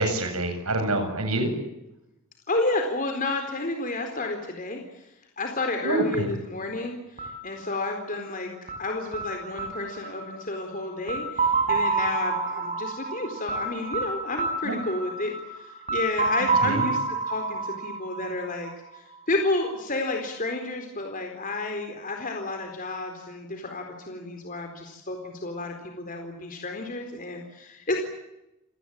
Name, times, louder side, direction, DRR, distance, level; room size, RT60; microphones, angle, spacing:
voice 1, 0.0-1.5 5.8-6.3 14.6-14.8 16.6-16.9, right 2 dB, 90° right, 6 dB, 8.0 m, -26 dB
voice 2, 2.5-5.1 5.4-8.5 8.8-28.0, left 2 dB, 40° left, 3 dB, 4.2 m, -31 dB
sound 1, 7.2-19.0, right 3 dB, 35° right, 6.2 m, -29 dB
29.0 x 19.0 x 8.8 m, 0.91 s
head